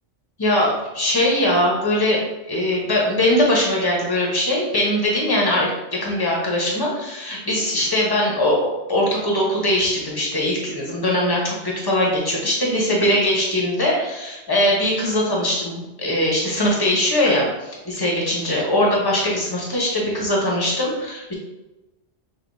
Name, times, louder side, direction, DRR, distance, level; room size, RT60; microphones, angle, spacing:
voice 1, 0.4-2.2 2.5-5.7 6.0-8.6 8.9-21.3, left 1 dB, 20° left, -3 dB, 0.9 m, -21 dB
5.9 x 2.7 x 2.6 m, 1.0 s
omnidirectional pair, 1.3 m